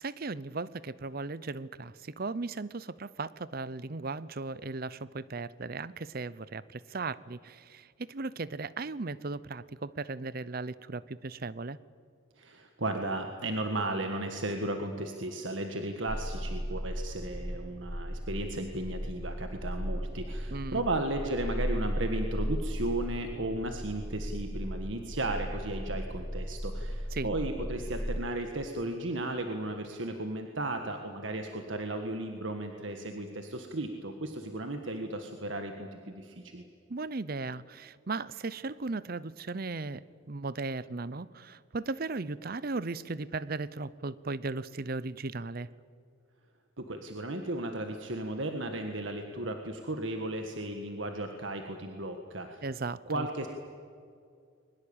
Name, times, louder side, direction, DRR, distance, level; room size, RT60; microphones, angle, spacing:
voice 1, 0.0-11.8 20.5-20.8 27.1-27.3 36.9-45.7 52.6-53.3, right 3 dB, 45° right, 18 dB, 0.7 m, -37 dB
voice 2, 12.4-36.6 46.8-52.6 53.1-53.5, right 1 dB, 65° right, 5 dB, 1.6 m, -35 dB
sound 1, 16.1-28.2, equal, 25° left, 5.0 m, -36 dB
22.5 x 21.0 x 8.8 m, 2.3 s
head